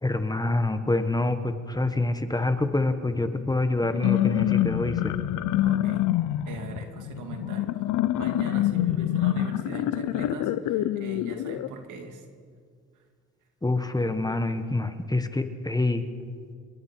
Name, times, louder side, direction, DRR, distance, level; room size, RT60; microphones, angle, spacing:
voice 1, 0.0-5.1 13.6-16.0, left 2 dB, 15° left, 9 dB, 1.4 m, -26 dB
sound 1, 3.8-11.7, left 13 dB, 85° left, 0.7 m, -26 dB
voice 2, 5.6-6.1 6.5-7.8 8.2-12.2, right 4 dB, 85° right, 4 dB, 2.6 m, -40 dB
26.0 x 22.0 x 4.5 m, 2.1 s
cardioid pair, 90°, 30 cm